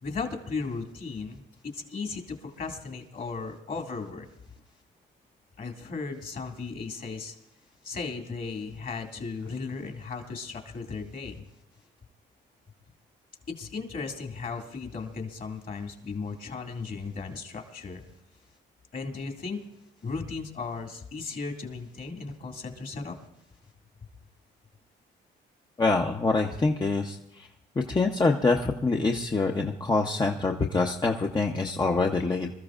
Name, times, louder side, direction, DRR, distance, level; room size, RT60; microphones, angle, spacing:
voice 1, 0.0-4.3 5.6-7.3 7.8-11.4 13.5-18.0 18.9-19.6 20.0-23.2, left 4 dB, 45° left, 3 dB, 2.3 m, -36 dB
voice 2, 25.8-27.5 27.8-32.5, left 3 dB, 20° left, 1 dB, 0.8 m, -25 dB
26.0 x 13.5 x 2.5 m, 0.83 s
cardioid pair, 90°, 20 cm